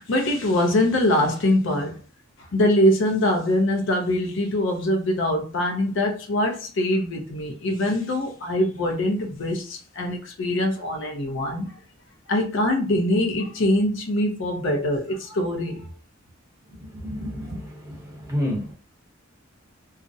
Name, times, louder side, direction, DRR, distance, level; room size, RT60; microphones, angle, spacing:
voice 1, 0.0-2.0 2.5-11.7 12.3-15.9, left 1 dB, 65° left, 0.5 m, -23 dB
voice 2, 16.7-18.0 18.3-18.7, left 1 dB, 15° right, 0.9 m, -30 dB
2.4 x 2.0 x 2.6 m
head